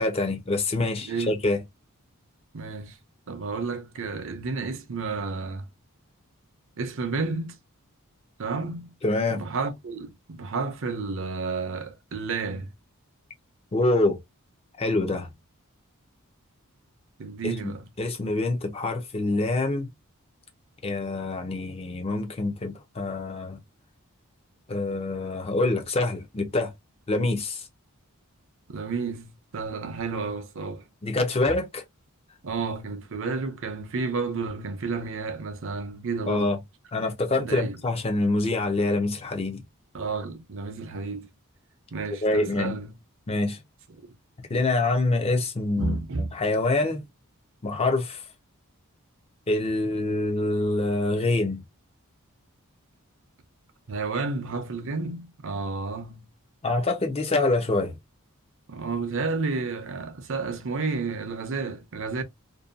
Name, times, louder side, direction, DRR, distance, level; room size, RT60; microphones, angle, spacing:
voice 1, 0.0-1.6 9.0-9.4 13.7-14.2 14.8-15.3 17.4-17.5 18.0-19.9 20.8-23.6 24.7-26.7 27.1-27.7 31.0-31.8 36.3-36.6 36.9-39.6 42.2-42.7 43.3-43.6 44.5-47.0 47.6-48.2 49.5-51.6 56.6-58.0, left 2 dB, 25° left, 0.5 m, -25 dB
voice 2, 2.5-3.0 3.3-5.7 6.8-7.5 8.4-8.9 9.3-12.7 17.2-17.8 28.7-30.8 32.4-36.5 37.4-37.8 39.9-41.3 41.9-42.9 43.9-44.1 45.8-46.4 53.9-56.2 58.7-62.2, right 4 dB, 60° right, 0.6 m, -31 dB
2.6 x 2.2 x 2.5 m
head